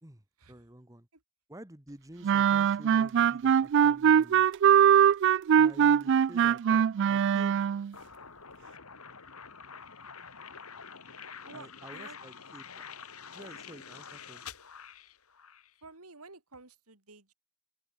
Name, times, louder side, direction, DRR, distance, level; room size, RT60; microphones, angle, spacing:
voice 1, 0.5-1.1 1.5-4.5 5.6-7.6 11.5-12.8 13.3-14.4, right 1 dB, 15° right, 1.7 m, -50 dB
sound 1, 2.2-7.9, right 8 dB, 55° right, 0.3 m, -22 dB
sound 2, 7.9-15.7, left 6 dB, 75° left, 4.3 m, -47 dB
voice 2, 11.4-12.2 15.8-17.3, right 3 dB, 80° right, 4.2 m, -51 dB
open air
head